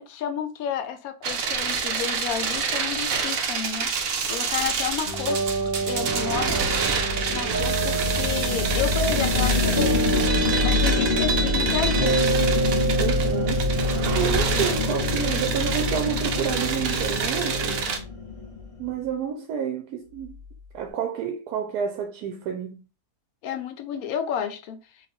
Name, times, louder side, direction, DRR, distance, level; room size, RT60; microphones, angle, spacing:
voice 1, 0.0-3.9 4.3-6.7 7.3-10.2 10.6-12.2 23.4-25.1, left 8 dB, 75° left, 1.0 m, -31 dB
sound 1, 1.2-18.0, right 5 dB, 65° right, 1.1 m, -28 dB
sound 2, 4.5-19.0, left 4 dB, 45° left, 0.4 m, -27 dB
sound 3, 5.0-17.8, right 2 dB, 10° right, 1.3 m, -28 dB
voice 2, 13.0-13.7 14.1-17.9 18.8-20.4 20.7-22.8, right 7 dB, 90° right, 1.1 m, -29 dB
3.2 x 2.5 x 4.1 m
omnidirectional pair, 1.6 m